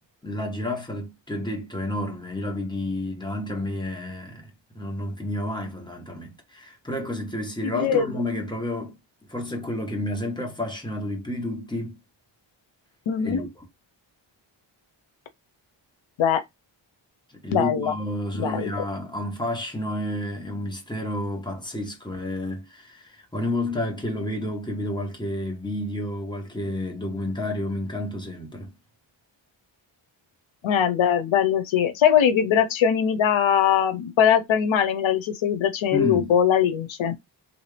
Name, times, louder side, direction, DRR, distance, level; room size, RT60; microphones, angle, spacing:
voice 1, 0.2-4.5 4.7-8.9 9.3-12.0 13.2-13.6 17.3-28.7 35.9-36.3, left 1 dB, 10° left, 1.3 m, -30 dB
voice 2, 7.6-8.1 13.1-13.5 16.2-16.4 17.5-17.9 18.3-18.7 30.6-37.1, left 8 dB, 90° left, 0.7 m, -21 dB
3.1 x 2.7 x 3.2 m
cardioid pair, 70°, 46 cm